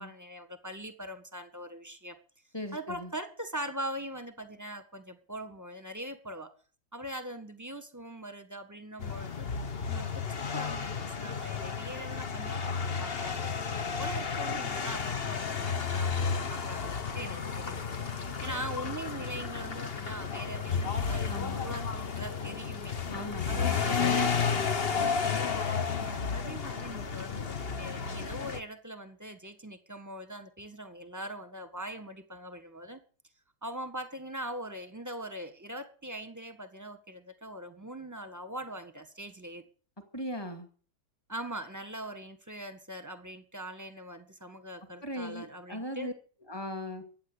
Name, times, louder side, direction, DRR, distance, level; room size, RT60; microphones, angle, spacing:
voice 1, 0.0-2.2 2.7-6.5 6.9-9.5 9.9-17.8 18.4-21.3 21.6-23.0 23.5-24.3 24.8-33.0 33.6-39.6 41.3-46.1, right 1 dB, 10° right, 9 dB, 1.5 m, -42 dB
voice 2, 2.5-3.1 21.2-21.6 23.1-24.0 40.1-40.7 45.0-46.1 46.5-47.1, equal, 10° left, 6 dB, 2.4 m, -38 dB
sound 1, 9.0-28.6, left 6 dB, 35° left, 1.1 m, -32 dB
15.0 x 9.7 x 8.1 m, 0.43 s
omnidirectional pair, 2.1 m